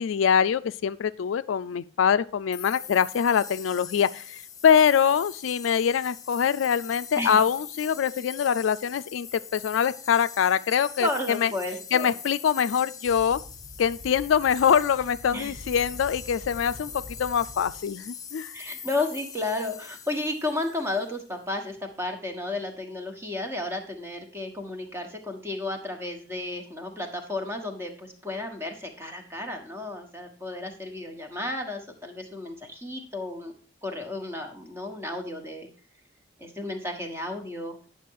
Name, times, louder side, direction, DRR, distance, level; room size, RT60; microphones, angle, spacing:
voice 1, 0.0-11.5 11.9-13.4 13.8-16.9 17.2-18.5, left 7 dB, 85° left, 14 dB, 0.4 m, -24 dB
sound 1, 2.5-21.2, left 7 dB, 20° left, 0.7 m, -42 dB
voice 2, 11.0-12.1 15.3-15.6 18.5-33.5 33.8-35.7 36.4-37.8, left 2 dB, 15° right, 4 dB, 1.3 m, -33 dB
sound 2, 13.0-18.0, left 1 dB, 60° right, 2.8 m, -45 dB
9.3 x 6.0 x 4.6 m, 0.40 s
head